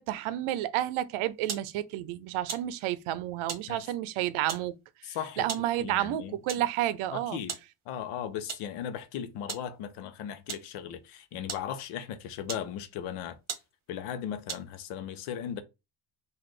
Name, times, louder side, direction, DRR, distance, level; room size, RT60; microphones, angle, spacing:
voice 1, 0.0-4.7 5.4-7.4, right 13 dB, 75° right, 0.6 m, -30 dB
sound 1, 1.5-1.7 2.5-2.7 3.5-3.7 4.5-4.7 5.5-5.7 6.5-6.7 7.5-7.7 8.5-8.7 9.5-9.7 10.5-10.7 11.5-11.7 12.4-12.7 13.2-13.3 13.5-13.7 14.5-14.8, right 6 dB, 30° right, 0.9 m, -37 dB
voice 2, 5.0-5.5 5.8-6.4 7.1-7.5 7.9-13.4 13.9-15.6, left 9 dB, 90° left, 0.8 m, -37 dB
4.0 x 2.5 x 3.1 m
cardioid pair, 110°, 50 cm